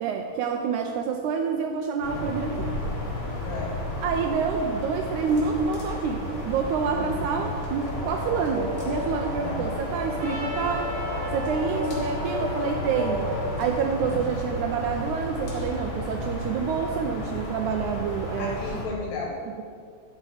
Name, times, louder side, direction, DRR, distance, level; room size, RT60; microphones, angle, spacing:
voice 1, 0.0-2.8 4.0-10.9 11.3-13.3 13.6-18.6, right 6 dB, 85° right, 3 dB, 1.7 m, -27 dB
sound 1, 2.0-18.8, left 1 dB, 40° left, 2.0 m, -33 dB
voice 2, 3.4-3.7 7.0-7.1 9.4-9.6 14.0-14.3 18.3-19.3, left 4 dB, 75° left, -2 dB, 2.5 m, -34 dB
sound 2, 7.4-13.5, left 1 dB, 60° left, 1.4 m, -34 dB
Trumpet, 10.2-14.2, right 2 dB, 60° right, 1.7 m, -40 dB
10.5 x 5.5 x 4.8 m, 2.1 s
omnidirectional pair, 4.0 m